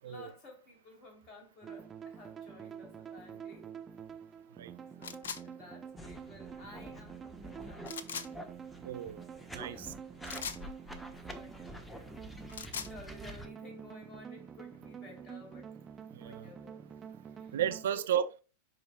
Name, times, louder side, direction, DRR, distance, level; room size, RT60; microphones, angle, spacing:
voice 1, 0.0-3.7 5.0-7.9 9.6-10.0 11.3-15.7 16.2-16.8 17.4-17.6 17.9-18.1, left 2 dB, 30° left, 3.2 m, -54 dB
sound 1, 1.6-17.9, right 7 dB, 20° right, 0.8 m, -48 dB
sound 2, 5.0-5.4 7.8-8.3 10.2-10.6 12.3-12.9, left 7 dB, 65° left, 0.6 m, -40 dB
sound 3, 6.0-13.5, left 1 dB, 10° left, 1.2 m, -48 dB
voice 2, 8.8-9.2 9.5-9.9 16.1-16.5 17.5-18.4, right 9 dB, 60° right, 0.6 m, -33 dB
12.0 x 4.7 x 2.3 m
figure-of-eight pair, 90°, 0 cm